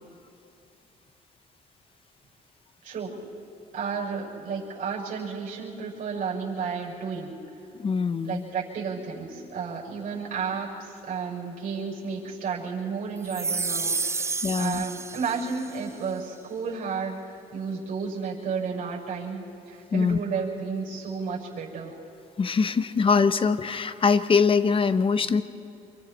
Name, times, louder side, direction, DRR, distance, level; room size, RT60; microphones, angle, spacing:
voice 1, 2.8-3.1 3.7-7.3 8.2-21.9, right 5 dB, 55° right, -3 dB, 6.2 m, -32 dB
voice 2, 7.8-8.4 14.4-14.8 19.9-20.2 22.4-25.4, left 5 dB, 35° left, 13 dB, 0.9 m, -23 dB
sound 1, 13.2-15.8, right 4 dB, 15° right, 0.5 m, -30 dB
27.5 x 23.5 x 4.4 m, 2.8 s
cardioid pair, 95°, 16 cm